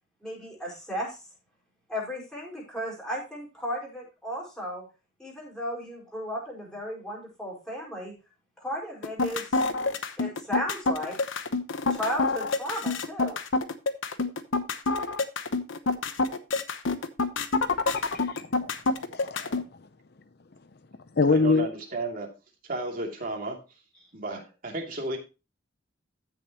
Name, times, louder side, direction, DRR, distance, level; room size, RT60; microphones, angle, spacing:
voice 1, 0.2-1.2 1.9-4.8 5.2-8.1 8.6-9.6 10.2-11.2 11.9-13.4, equal, 5° left, -4 dB, 5.1 m, -34 dB
sound 1, 9.0-19.6, left 3 dB, 85° left, 1.0 m, -27 dB
voice 2, 17.9-18.7 19.1-19.9 21.1-21.7, left 4 dB, 55° left, 9 dB, 0.7 m, -26 dB
voice 3, 21.3-22.3 22.6-23.6 24.1-25.2, right 2 dB, 45° right, 1 dB, 2.7 m, -33 dB
14.5 x 6.8 x 3.0 m, 0.29 s
head